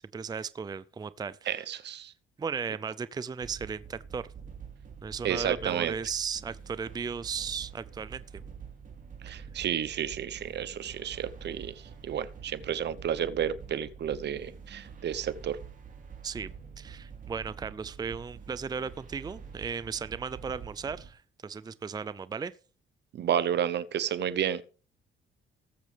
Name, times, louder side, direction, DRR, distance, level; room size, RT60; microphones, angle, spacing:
voice 1, 0.1-1.7 2.4-4.2 5.0-8.4 16.2-16.5 16.8-22.5, right 6 dB, 20° right, 0.5 m, -36 dB
voice 2, 1.5-2.1 5.2-5.9 9.2-11.7 12.0-15.6 23.1-24.6, right 9 dB, 60° right, 0.8 m, -31 dB
sound 1, 3.4-21.1, right 6 dB, 40° right, 2.8 m, -46 dB
19.0 x 7.4 x 3.4 m
cardioid pair, 90°, 20 cm